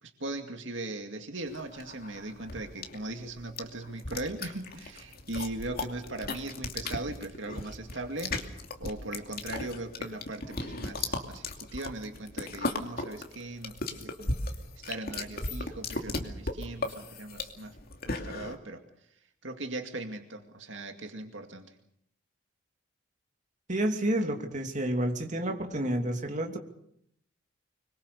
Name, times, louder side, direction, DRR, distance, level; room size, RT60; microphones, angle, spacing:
voice 1, 0.0-8.5 8.8-14.4 14.8-17.8 18.1-18.8 19.4-21.7, right 2 dB, 70° right, 5 dB, 2.3 m, -39 dB
sound 1, 1.5-18.6, left 2 dB, 50° left, 2.6 m, -36 dB
voice 2, 23.7-26.6, right 1 dB, 40° right, 3 dB, 2.9 m, -29 dB
25.0 x 22.0 x 6.8 m, 0.72 s
head